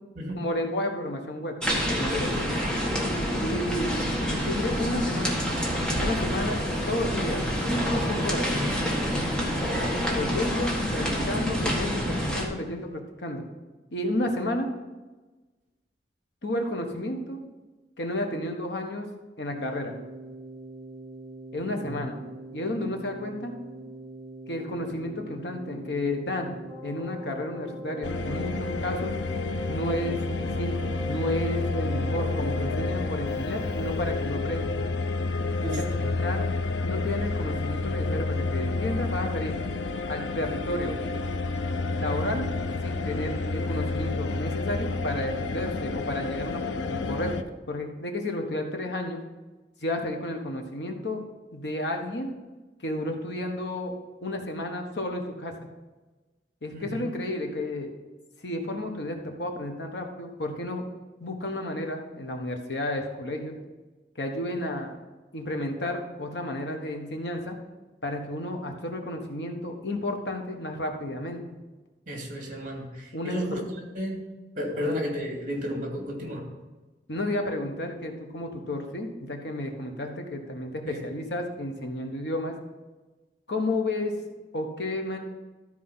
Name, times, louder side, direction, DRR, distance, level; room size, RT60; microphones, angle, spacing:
voice 1, 0.3-1.6 1.9-2.5 3.4-4.0 4.3-5.4 6.0-6.6 6.9-8.5 10.1-13.4 13.9-14.7 16.4-17.4 18.0-19.1 19.4-19.9 21.5-22.2 22.5-23.5 24.5-29.1 29.7-34.7 35.6-35.7 36.2-36.5 36.8-39.6 40.1-41.0 41.9-42.5 42.8-47.3 47.7-49.2 49.8-52.3 52.8-53.9 54.2-55.5 56.6-57.9 58.4-60.8 61.2-63.5 64.2-65.0 65.3-67.6 68.0-71.4 73.1-73.7 74.7-74.9 77.1-82.5 83.5-84.1 84.5-85.2, left 1 dB, 75° left, 3 dB, 1.4 m, -32 dB
sound 1, 1.6-12.5, equal, 5° left, 1.6 m, -27 dB
voice 2, 9.3-9.8 21.6-21.9 35.6-36.0 56.7-57.1 72.1-73.6 73.9-74.2 74.6-76.4 80.9-81.0, equal, 50° right, 0 dB, 2.5 m, -33 dB
Keyboard (musical), 19.5-34.6, right 1 dB, 20° right, 2.0 m, -41 dB
sound 2, 28.0-47.4, left 3 dB, 90° left, 0.6 m, -30 dB
13.5 x 4.7 x 5.7 m, 1.2 s
head